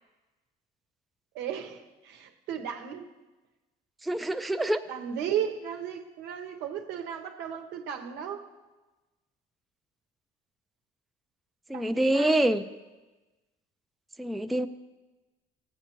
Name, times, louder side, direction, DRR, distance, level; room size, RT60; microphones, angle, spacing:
voice 1, 1.3-3.1 4.9-8.5 11.7-12.4, right 8 dB, 85° right, 1.0 m, -35 dB
voice 2, 4.0-4.8 11.7-12.6 14.2-14.7, right 1 dB, ahead, 0.3 m, -25 dB
15.0 x 8.0 x 3.0 m
cardioid pair, 110°, 17 cm